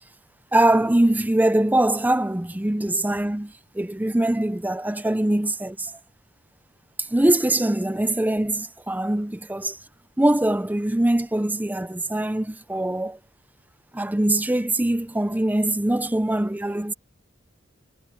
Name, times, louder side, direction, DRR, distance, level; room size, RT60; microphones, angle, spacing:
voice 1, 0.5-5.9 7.0-9.8 10.2-13.2 13.9-16.9, right 1 dB, 10° right, 0.5 m, -22 dB
head